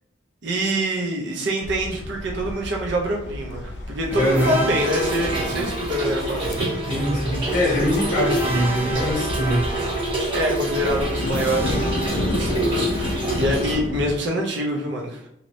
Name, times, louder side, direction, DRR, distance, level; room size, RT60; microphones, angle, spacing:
voice 1, 0.4-6.7 9.8-9.9 10.1-15.3, right 1 dB, 60° right, -1 dB, 0.6 m, -26 dB
sound 1, 1.6-14.2, left 1 dB, 60° left, 0.4 m, -31 dB
voice 2, 4.1-4.5 6.9-9.7, equal, 40° left, -3 dB, 1.0 m, -23 dB
sound 2, 4.1-13.0, right 2 dB, 10° right, 0.4 m, -31 dB
Trickle dribble / Fill (with liquid), 4.7-13.7, right 1 dB, 25° right, 0.8 m, -28 dB
3.0 x 2.8 x 2.6 m, 0.78 s
head